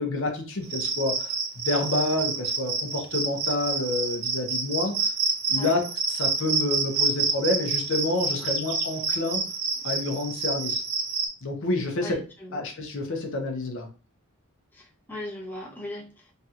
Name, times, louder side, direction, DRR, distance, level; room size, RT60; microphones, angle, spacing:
voice 1, 0.0-5.1 5.5-9.4 9.8-10.8 11.4-12.2 12.5-13.9, left 2 dB, 60° left, 3 dB, 0.7 m, -28 dB
Cricket, 0.6-11.3, right 4 dB, 75° right, 0.8 m, -28 dB
voice 2, 12.0-12.6 14.7-16.3, left 1 dB, 10° left, -3 dB, 0.7 m, -39 dB
3.2 x 2.7 x 2.4 m, 0.36 s
head